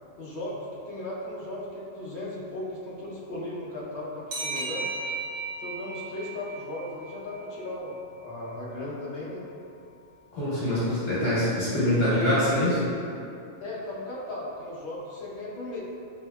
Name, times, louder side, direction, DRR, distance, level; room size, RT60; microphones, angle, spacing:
voice 1, 0.2-4.9 5.6-8.0 8.2-9.5 13.6-15.8, left 1 dB, 55° left, -7 dB, 0.7 m, -36 dB
sound 1, 4.3-7.6, right 3 dB, 90° right, 1.1 m, -35 dB
voice 2, 10.3-12.9, left 1 dB, 85° left, -10 dB, 1.1 m, -24 dB
2.7 x 2.6 x 2.2 m, 2.6 s
omnidirectional pair, 1.3 m